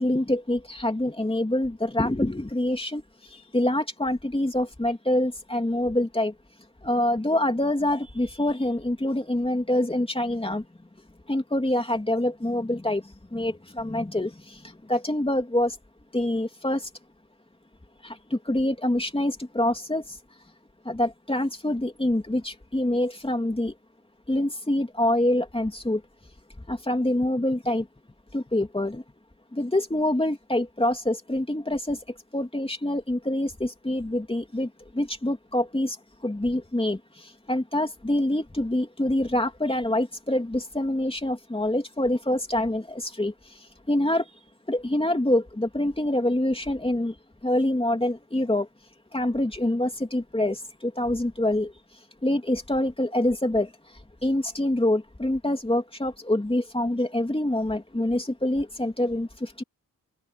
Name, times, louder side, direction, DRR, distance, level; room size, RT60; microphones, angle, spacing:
voice 1, 0.0-6.3 6.8-10.6 11.3-15.8 16.1-16.9 18.0-20.2 20.8-23.7 24.3-26.0 26.7-27.9 28.3-29.0 29.5-36.0 36.2-44.3 44.7-47.1 47.4-48.7 49.1-51.7 52.2-59.6, left 1 dB, 15° left, 3.0 m, -26 dB
wide cardioid pair, 115°, 34 cm